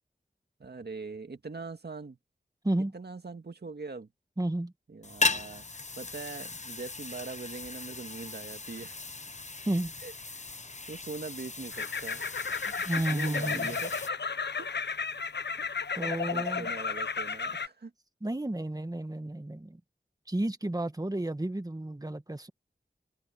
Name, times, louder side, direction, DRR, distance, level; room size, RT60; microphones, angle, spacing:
voice 1, 0.6-2.2 2.9-4.1 4.9-5.6 6.0-9.0 10.0-10.5 10.9-12.8 13.1-13.9 14.6-14.7 15.6-15.7 16.3-17.9, right 4 dB, 70° right, 2.1 m, -42 dB
voice 2, 4.4-4.7 9.7-9.9 12.8-13.8 16.0-16.7 18.2-19.8 20.3-22.5, right 1 dB, 20° right, 1.7 m, -32 dB
sound 1, 5.0-14.1, left 3 dB, 40° left, 1.1 m, -37 dB
sound 2, 11.7-17.7, left 5 dB, 80° left, 1.0 m, -33 dB
cardioid pair, 45°, 18 cm